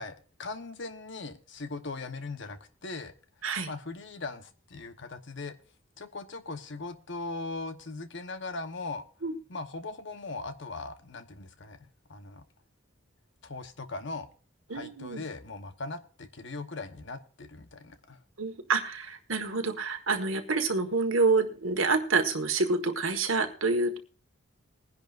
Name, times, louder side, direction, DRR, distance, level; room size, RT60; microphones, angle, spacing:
voice 1, 0.0-3.1 3.7-5.6 6.0-9.0 9.5-12.4 13.4-14.3 14.7-18.2, left 3 dB, 60° left, 9 dB, 1.1 m, -39 dB
voice 2, 14.7-15.2 18.4-24.0, right 4 dB, 75° right, 6 dB, 1.6 m, -27 dB
21.0 x 10.5 x 2.5 m, 0.38 s
head